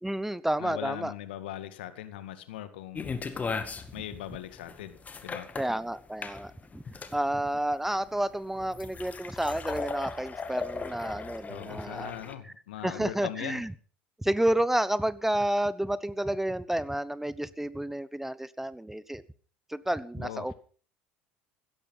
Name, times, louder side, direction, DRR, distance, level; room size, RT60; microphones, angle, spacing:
voice 1, 0.0-1.1 5.6-12.1 12.4-12.5 12.8-13.7 14.2-19.2 19.7-20.5, right 1 dB, 5° right, 18 dB, 0.9 m, -30 dB
voice 2, 0.6-3.2 3.9-5.0 5.2-5.5 11.5-13.6 20.2-20.5, left 12 dB, 75° left, 11 dB, 1.9 m, -40 dB
sound 1, 3.0-12.3, left 4 dB, 30° left, 2.0 m, -37 dB
16.0 x 13.5 x 5.6 m, 0.44 s
hypercardioid pair, 70°, 5 cm